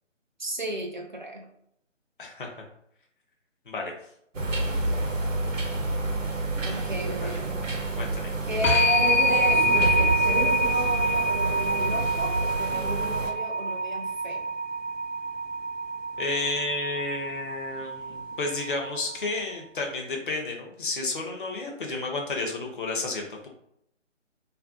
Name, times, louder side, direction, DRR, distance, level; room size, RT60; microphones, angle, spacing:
voice 1, 0.4-1.4 6.6-7.8 8.5-14.4, right 1 dB, 40° right, 1 dB, 0.4 m, -34 dB
voice 2, 2.2-2.6 3.7-3.9 7.2-7.4 8.0-8.3 16.2-23.5, left 3 dB, 45° left, 1 dB, 0.4 m, -31 dB
sound 1, 4.3-13.3, right 2 dB, 85° right, 0.8 m, -29 dB
sound 2, 8.6-19.3, right 1 dB, 85° left, 0.6 m, -26 dB
2.5 x 2.5 x 2.4 m, 0.74 s
figure-of-eight pair, 165°, 38 cm